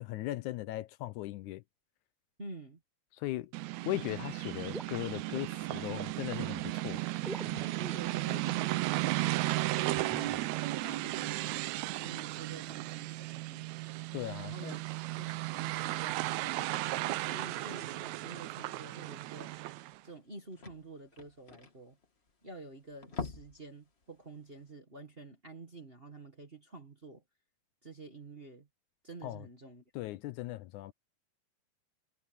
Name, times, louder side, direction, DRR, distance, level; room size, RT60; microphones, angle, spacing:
voice 1, 0.0-1.6 3.1-3.5 3.9-7.0 14.1-14.8 29.2-29.5 30.0-30.9, left 16 dB, 80° left, 2.0 m, -38 dB
voice 2, 2.4-2.8 7.6-10.5 10.8-11.7 12.0-13.7 14.4-14.8 15.1-19.5 20.0-22.0 22.4-27.2 27.8-28.7 29.0-29.8, right 3 dB, 25° right, 1.4 m, -49 dB
sound 1, 3.5-20.0, right 18 dB, 80° right, 1.7 m, -35 dB
sound 2, 4.2-5.9 7.2-8.2 8.7-8.8 9.9-10.5, equal, ahead, 4.2 m, -45 dB
sound 3, 19.6-19.7 19.9-20.0 20.2-22.5 22.9-23.7 24.0-24.2 24.6-24.7, left 4 dB, 30° left, 1.3 m, -43 dB
omnidirectional pair, 3.7 m